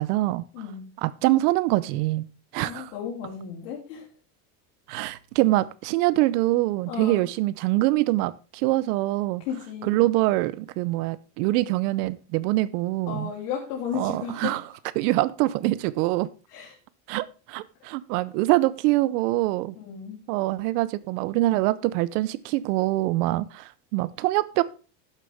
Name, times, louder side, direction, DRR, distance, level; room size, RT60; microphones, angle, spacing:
voice 1, 0.0-0.4 1.0-2.3 2.5-2.9 4.9-9.4 9.8-13.3 13.9-14.6 15.0-16.3 17.1-19.7 20.3-24.6, right 18 dB, 80° right, 0.7 m, -24 dB
voice 2, 0.5-0.9 2.6-4.1 6.9-7.3 9.4-10.1 13.1-14.6 16.5-16.8 19.8-20.2, left 8 dB, 90° left, 3.5 m, -34 dB
12.0 x 7.4 x 3.5 m
cardioid pair, 145°, 46 cm